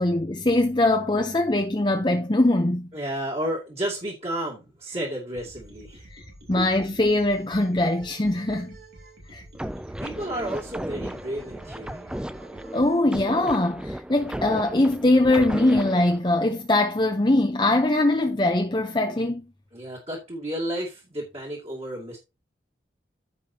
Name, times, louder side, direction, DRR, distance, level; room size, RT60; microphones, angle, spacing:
voice 1, 0.0-2.9 6.1-8.8 9.3-9.4 12.7-19.4, left 2 dB, 25° left, 0.8 m, -22 dB
voice 2, 2.9-6.0 6.5-6.7 10.0-12.1 19.7-22.2, right 1 dB, 35° right, 2.6 m, -32 dB
sound 1, 5.3-13.0, right 2 dB, 70° right, 5.0 m, -48 dB
sound 2, 9.5-16.2, equal, 5° right, 0.4 m, -35 dB
15.0 x 5.5 x 2.9 m
head